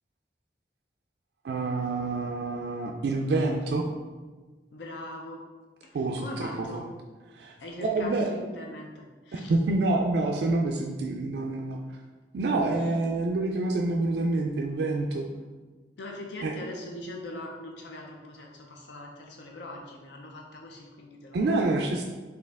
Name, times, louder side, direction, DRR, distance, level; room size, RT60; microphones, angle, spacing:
voice 1, 1.4-3.9 5.9-6.8 7.3-7.6 7.8-8.3 9.3-11.8 12.3-15.3 16.4-16.5 21.3-22.0, right 2 dB, 65° right, 1 dB, 0.3 m, -27 dB
voice 2, 4.7-5.4 5.8-6.9 7.6-9.5 16.0-21.5, left 1 dB, 70° left, 0 dB, 0.5 m, -41 dB
4.4 x 2.7 x 3.4 m, 1.4 s
head